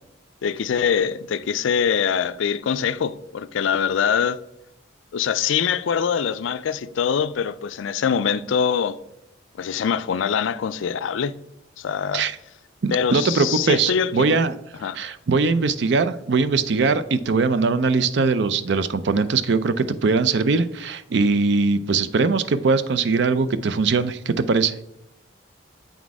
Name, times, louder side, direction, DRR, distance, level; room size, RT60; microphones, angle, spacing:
voice 1, 0.4-4.4 5.1-9.0 9.6-11.3 11.8-12.2 12.9-14.4 14.8-15.0, left 7 dB, 70° left, 0.4 m, -23 dB
voice 2, 12.8-14.5 14.9-24.7, right 4 dB, 60° right, 0.4 m, -21 dB
8.1 x 4.1 x 4.7 m
head